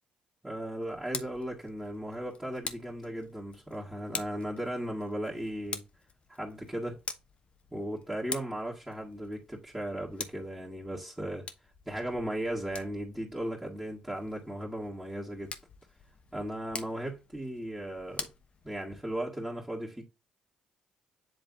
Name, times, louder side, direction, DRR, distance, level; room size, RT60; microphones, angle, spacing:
voice 1, 0.4-5.8 6.3-7.0 7.7-11.5 11.9-15.5 16.3-18.3 18.6-20.0, right 1 dB, 10° right, 1.9 m, -36 dB
Tick, 0.8-19.2, left 5 dB, 45° left, 1.0 m, -46 dB
7.8 x 3.4 x 3.9 m
supercardioid pair, 65°, 3 cm